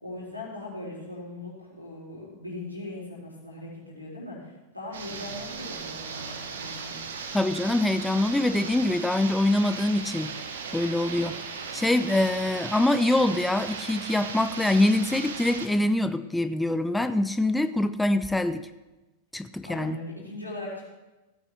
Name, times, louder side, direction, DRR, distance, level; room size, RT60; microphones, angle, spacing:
voice 1, 0.0-7.0 19.6-20.9, left 2 dB, 85° left, -5 dB, 3.6 m, -39 dB
sound 1, 4.9-15.7, right 5 dB, 60° right, 1.2 m, -37 dB
voice 2, 7.3-10.3 10.7-11.4 11.7-18.6 19.3-20.0, left 1 dB, 5° left, 11 dB, 0.4 m, -24 dB
16.0 x 8.8 x 3.4 m, 1.1 s
figure-of-eight pair, 90°, 0 cm